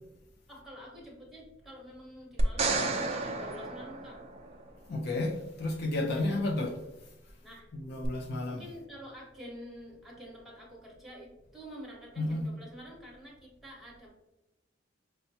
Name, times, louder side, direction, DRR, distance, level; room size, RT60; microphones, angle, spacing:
voice 1, 0.5-4.2 6.2-6.3 7.4-7.7 8.5-14.1, equal, ahead, 1.1 m, -48 dB
sound 1, 2.4-4.7 8.0-8.1, right 3 dB, 35° right, 0.4 m, -32 dB
voice 2, 4.9-6.8 7.7-8.7 12.2-12.5, left 2 dB, 60° left, 0.5 m, -32 dB
5.5 x 2.2 x 2.7 m
head